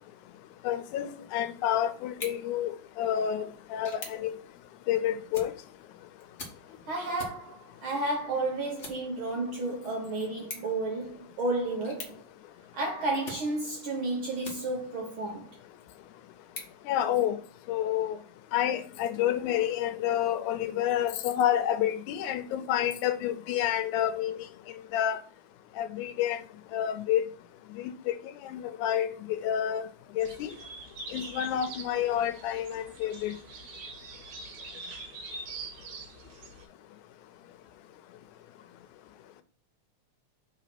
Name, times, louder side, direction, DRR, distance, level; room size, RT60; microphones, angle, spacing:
voice 1, 0.6-4.3 4.9-5.5 16.9-17.4 17.7-18.2 18.5-24.5 24.9-25.2 25.8-26.4 26.7-27.2 27.8-28.2 28.4-29.9 30.2-30.5 31.1-33.3, left 10 dB, 90° left, 2.1 m, -29 dB
sound 1, 2.0-15.0 15.5-17.6, left 3 dB, 55° left, 0.8 m, -48 dB
voice 2, 6.9-12.2 12.7-15.5, right 2 dB, 65° right, 1.4 m, -32 dB
sound 2, 30.2-36.6, right 3 dB, 90° right, 2.8 m, -44 dB
4.9 x 4.0 x 5.8 m
omnidirectional pair, 3.4 m